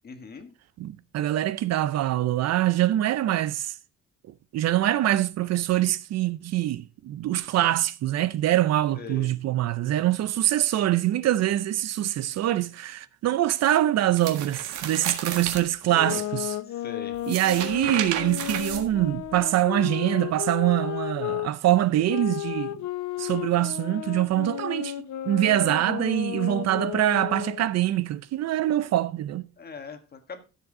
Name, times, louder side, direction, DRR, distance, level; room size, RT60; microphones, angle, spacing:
voice 1, 0.0-0.5 8.9-9.4 15.9-16.2 16.7-17.2 29.6-30.4, left 5 dB, 35° left, 1.4 m, -40 dB
voice 2, 0.8-3.7 4.5-16.5 17.3-22.8 23.2-24.9 25.3-29.5, right 13 dB, 60° right, 0.6 m, -24 dB
sound 1, 14.2-15.6 17.1-19.4, right 9 dB, 85° right, 1.7 m, -33 dB
sound 2, 15.9-21.5 22.1-27.7, left 13 dB, 70° left, 0.8 m, -33 dB
13.0 x 7.4 x 3.7 m
cardioid pair, 165°, 29 cm